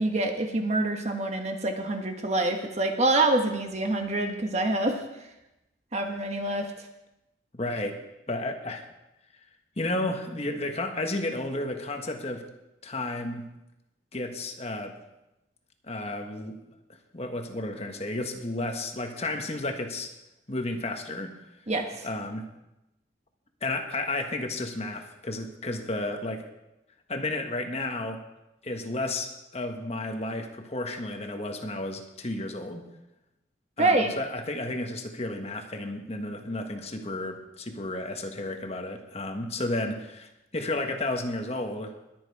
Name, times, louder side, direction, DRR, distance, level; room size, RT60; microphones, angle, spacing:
voice 1, 0.0-5.0 5.9-6.9 21.7-22.1 33.8-34.1, right 2 dB, 35° right, 4 dB, 1.3 m, -26 dB
voice 2, 7.5-8.0 8.3-8.9 9.8-12.4 12.8-13.4 14.1-14.9 15.8-16.6 17.1-20.1 20.5-21.3 22.0-22.5 23.6-26.4 27.1-28.2 28.6-32.9 33.8-41.9, left 2 dB, 35° left, 4 dB, 1.4 m, -32 dB
21.0 x 7.7 x 4.8 m, 0.93 s
head